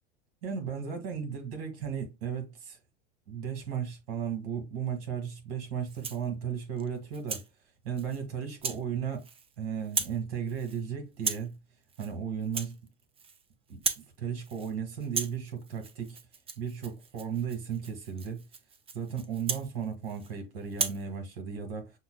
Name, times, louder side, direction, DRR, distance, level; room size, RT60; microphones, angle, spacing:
voice 1, 0.4-2.8 3.3-7.5 7.8-9.2 9.6-11.6 12.0-12.8 13.7-16.2 16.6-18.4 18.9-21.9, right 7 dB, 65° right, 2.0 m, -35 dB
Rattle (instrument), 5.8-6.3 6.8-7.5 8.0-8.2 8.6-8.8 9.1-9.6 9.8-10.2 10.5-10.8 11.2-11.5 11.9-12.1 12.4-13.4 13.7-14.1 14.4-14.7 15.0-20.3 20.7-21.0, right 5 dB, 20° right, 0.5 m, -36 dB
6.7 x 2.4 x 2.3 m
hypercardioid pair, 85°, 31 cm